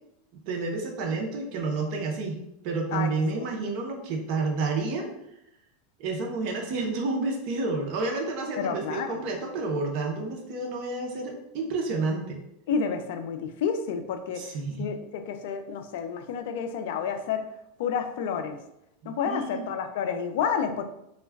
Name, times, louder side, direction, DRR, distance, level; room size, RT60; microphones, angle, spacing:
voice 1, 0.5-2.4 2.6-5.1 6.0-12.4 14.4-14.9 19.0-19.7, right 3 dB, 50° right, 2 dB, 0.6 m, -30 dB
voice 2, 2.9-3.5 8.6-9.2 12.7-14.4 14.8-17.4 17.8-18.6 19.1-20.8, left 6 dB, 70° left, 7 dB, 0.3 m, -30 dB
2.2 x 2.1 x 3.3 m, 0.81 s
supercardioid pair, 140°, 0 cm